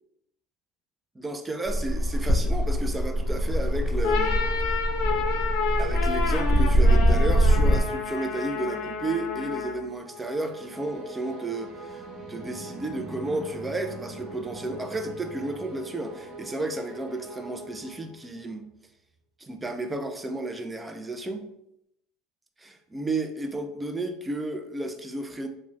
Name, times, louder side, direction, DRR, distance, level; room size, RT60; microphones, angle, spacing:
voice 1, 1.2-4.4 5.8-12.0 12.3-18.7 19.4-21.5 22.6-25.5, right 2 dB, 15° right, 6 dB, 0.3 m, -32 dB
sound 1, 1.7-7.8, equal, 30° left, 0.7 m, -23 dB
sound 2, 3.9-9.9, left 5 dB, 70° left, 0.4 m, -30 dB
sound 3, 10.0-18.4, right 2 dB, 35° right, 1.2 m, -42 dB
2.3 x 2.0 x 3.1 m, 0.79 s
supercardioid pair, 120°, 0 cm